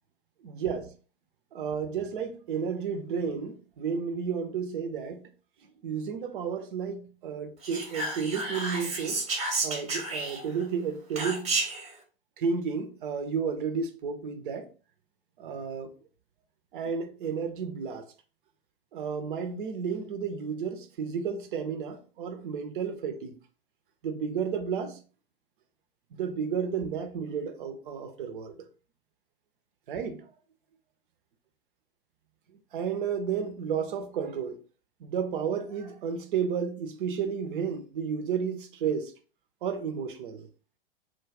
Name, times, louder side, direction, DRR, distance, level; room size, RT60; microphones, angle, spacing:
voice 1, 0.4-0.9 1.5-5.3 5.8-9.2 9.6-11.6 12.4-14.7 15.4-15.9 16.7-18.1 18.9-23.3 24.0-25.0 26.1-28.7 29.9-30.3 32.7-34.6 35.0-39.1 39.6-40.5, right 6 dB, 60° right, 0.6 m, -32 dB
Whispering, 7.6-10.6 11.2-11.9, right 3 dB, 25° right, 0.9 m, -31 dB
2.3 x 2.2 x 3.2 m
figure-of-eight pair, 95°, 29 cm